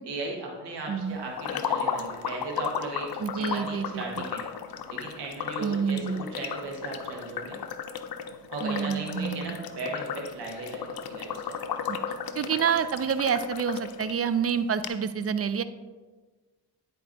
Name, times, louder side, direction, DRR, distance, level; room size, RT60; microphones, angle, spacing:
voice 1, 0.0-4.4 4.9-7.6 8.5-11.7, right 2 dB, 85° right, -1 dB, 1.4 m, -37 dB
voice 2, 0.9-1.2 3.2-4.3 5.6-6.2 8.6-9.6 11.9-12.0 12.3-15.6, right 7 dB, 40° right, 12 dB, 0.4 m, -28 dB
sound 1, 1.4-14.1 14.5-14.6 14.8-14.9, left 7 dB, 65° left, 0.6 m, -35 dB
9.9 x 4.5 x 2.6 m, 1.3 s
supercardioid pair, 55°, 39 cm